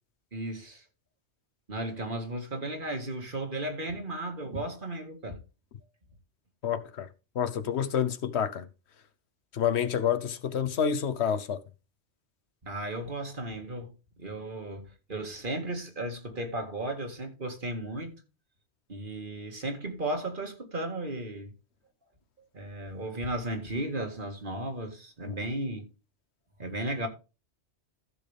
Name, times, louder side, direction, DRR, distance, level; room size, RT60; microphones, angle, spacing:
voice 1, 0.3-0.8 1.7-5.4 12.6-13.9 14.2-18.2 18.9-21.5 22.5-25.9 26.6-27.1, right 1 dB, 45° right, 2.1 m, -35 dB
voice 2, 6.6-7.1 7.3-8.7 9.5-11.6 25.3-25.4, left 8 dB, 70° left, 1.1 m, -28 dB
15.0 x 6.4 x 3.4 m
omnidirectional pair, 1.2 m